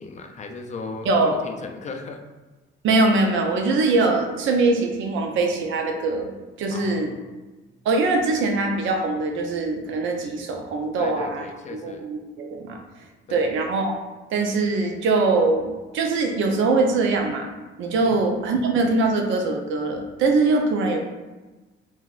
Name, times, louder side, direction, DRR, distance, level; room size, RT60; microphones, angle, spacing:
voice 1, 0.0-2.2 6.7-7.3 11.0-12.0 13.3-13.4 18.0-18.2, left 3 dB, 35° left, 4 dB, 0.4 m, -37 dB
voice 2, 1.1-1.4 2.8-6.3 6.6-7.1 7.9-11.5 11.8-12.8 13.3-13.9 14.3-17.5 17.8-21.0, right 3 dB, 75° right, 3 dB, 0.5 m, -22 dB
3.9 x 2.2 x 2.4 m, 1.2 s
cardioid pair, 90°, 20 cm